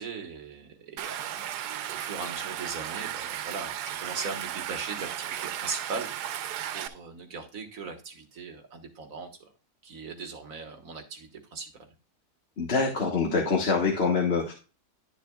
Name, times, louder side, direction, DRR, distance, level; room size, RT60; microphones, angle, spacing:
voice 1, 0.0-9.5 9.8-11.9, right 4 dB, 60° right, 5 dB, 1.7 m, -39 dB
Stream, 1.0-6.9, right 11 dB, 90° right, 1.2 m, -35 dB
voice 2, 12.6-14.5, left 4 dB, 45° left, -1 dB, 1.4 m, -25 dB
11.5 x 6.7 x 2.3 m, 0.33 s
omnidirectional pair, 1.7 m